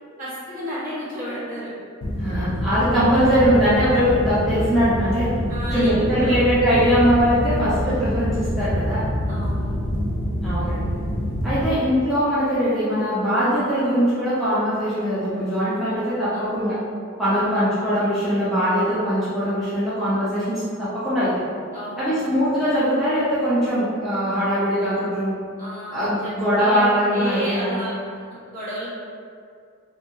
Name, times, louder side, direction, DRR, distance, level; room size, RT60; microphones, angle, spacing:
voice 1, 0.2-1.7 5.5-6.5 9.3-9.7 11.6-11.8 16.3-16.7 17.2-17.6 21.7-22.3 25.6-26.3 26.6-27.9 28.3-28.9, equal, 40° right, -11 dB, 1.2 m, -32 dB
sound 1, 2.0-11.7, equal, 80° left, 0.5 m, -26 dB
voice 2, 2.2-5.3 5.7-9.0 10.4-10.9 11.4-16.8 17.2-21.4 22.0-25.4 25.9-27.9, equal, ahead, -13 dB, 0.5 m, -21 dB
2.7 x 2.6 x 2.6 m, 2.2 s
head